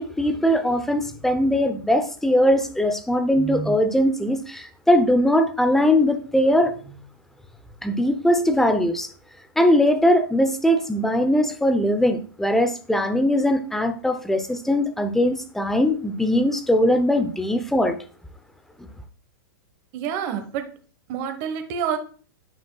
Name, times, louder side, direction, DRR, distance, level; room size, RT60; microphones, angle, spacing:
voice 1, 0.0-7.0 7.8-9.1 9.6-18.0, left 1 dB, 5° left, 0.6 m, -20 dB
voice 2, 19.9-20.7 21.1-22.0, right 8 dB, 45° right, 1.2 m, -27 dB
9.3 x 5.0 x 2.3 m
hypercardioid pair, 135°, 11 cm